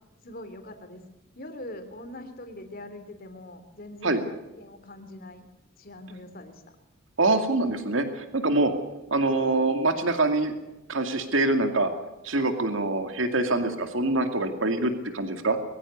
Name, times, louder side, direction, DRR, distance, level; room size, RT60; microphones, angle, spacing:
voice 1, 0.2-1.0 1.3-4.3 4.6-5.5 5.8-6.6 9.0-9.1, left 1 dB, 45° left, 7 dB, 3.1 m, -42 dB
voice 2, 7.2-8.7 9.1-10.5 10.9-11.9 12.2-15.6, right 2 dB, 75° right, 7 dB, 2.3 m, -24 dB
22.0 x 15.5 x 8.3 m, 1.0 s
head